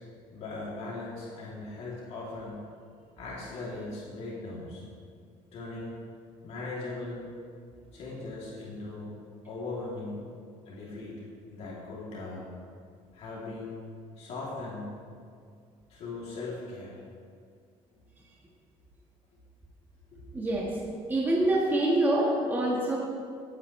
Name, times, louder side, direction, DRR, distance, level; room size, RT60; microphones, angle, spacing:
voice 1, 0.3-2.6 3.2-4.8 5.5-6.0 6.4-7.2 7.9-9.1 9.4-10.3 10.6-11.1 11.5-12.5 13.1-13.8 14.2-14.9 15.9-17.0 20.1-20.2, left 2 dB, 55° left, -6 dB, 3.0 m, -39 dB
voice 2, 20.3-20.7 21.1-23.0, right 1 dB, 15° right, -4 dB, 1.6 m, -25 dB
17.5 x 9.1 x 3.3 m, 2.2 s
cardioid pair, 135°, 13 cm